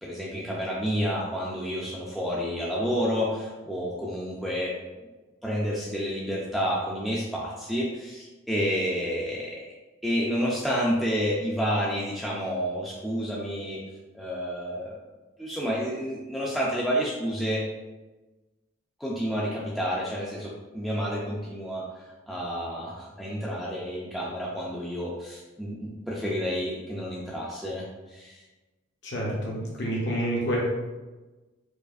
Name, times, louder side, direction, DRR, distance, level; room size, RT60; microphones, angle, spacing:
voice 1, 0.0-4.7 5.4-9.6 10.0-13.8 14.1-15.0 15.4-17.7 19.0-28.4, equal, ahead, -6 dB, 0.3 m, -30 dB
voice 2, 29.0-30.6, equal, 55° left, -4 dB, 0.7 m, -28 dB
4.6 x 2.5 x 2.4 m, 1.2 s
head